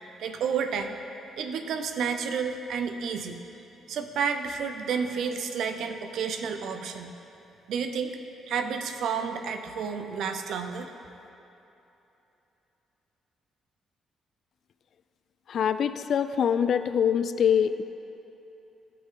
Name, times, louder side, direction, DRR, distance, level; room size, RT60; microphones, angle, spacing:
voice 1, 0.2-0.9 1.4-3.4 3.9-7.1 7.7-8.2 8.5-10.9, right 6 dB, 75° right, 7 dB, 0.6 m, -30 dB
voice 2, 15.5-17.8, left 8 dB, 60° left, 11 dB, 0.3 m, -24 dB
14.0 x 5.9 x 3.7 m, 3.0 s
cardioid pair, 90°, 0 cm